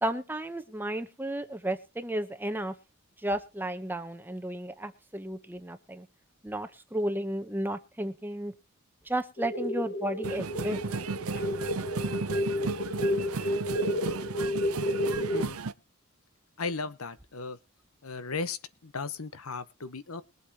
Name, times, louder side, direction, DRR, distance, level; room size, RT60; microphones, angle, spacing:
voice 1, 0.0-2.7 3.2-6.1 6.4-8.5 9.1-10.8, right 1 dB, 10° right, 8 dB, 0.8 m, -33 dB
sound 1, 9.4-15.4, left 1 dB, 50° left, 1.9 m, -31 dB
sound 2, 10.2-15.7, right 4 dB, 80° right, 0.7 m, -35 dB
voice 2, 16.6-17.6 18.0-20.2, left 4 dB, 80° left, 14 dB, 1.0 m, -36 dB
21.5 x 8.0 x 2.9 m, 0.30 s
head